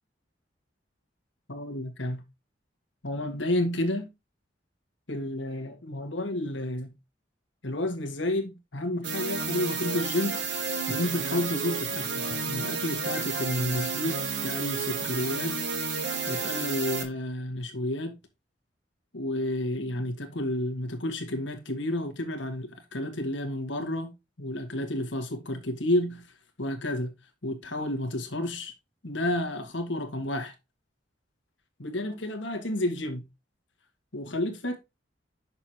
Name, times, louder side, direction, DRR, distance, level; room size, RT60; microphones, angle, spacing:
voice 1, 1.5-2.2 3.0-4.1 5.1-6.9 7.6-10.4 10.9-15.6 16.3-18.2 19.1-24.1 24.4-26.2 26.6-27.1 27.4-28.7 29.0-30.5 31.8-33.2 34.1-34.8, left 1 dB, 85° left, 1.7 m, -31 dB
sound 1, 9.0-17.0, right 5 dB, 70° right, 1.3 m, -31 dB
7.0 x 6.3 x 2.9 m
head